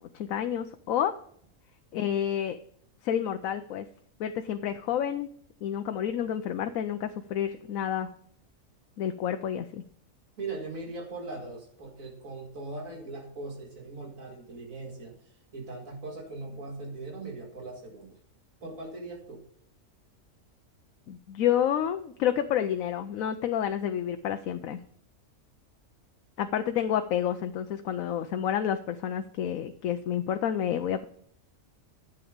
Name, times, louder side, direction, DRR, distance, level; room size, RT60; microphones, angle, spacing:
voice 1, 0.1-1.1 1.9-2.6 3.0-3.9 4.2-5.3 5.6-8.1 9.0-9.8 21.1-24.8 26.4-31.0, left 9 dB, 85° left, 8 dB, 1.0 m, -29 dB
voice 2, 10.4-15.1 15.5-18.1 18.6-19.4, right 3 dB, 85° right, 0 dB, 2.4 m, -40 dB
11.0 x 7.3 x 5.0 m, 0.65 s
omnidirectional pair, 1.4 m